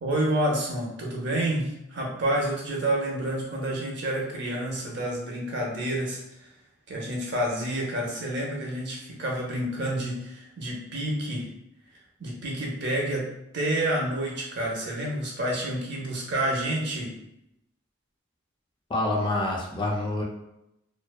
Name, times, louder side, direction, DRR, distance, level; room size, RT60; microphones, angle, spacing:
voice 1, 0.0-6.5 6.9-11.5 12.2-17.1, right 1 dB, 60° right, -1 dB, 0.6 m, -29 dB
voice 2, 18.9-20.2, left 2 dB, 25° left, -2 dB, 0.4 m, -27 dB
2.5 x 2.2 x 2.2 m, 0.84 s
head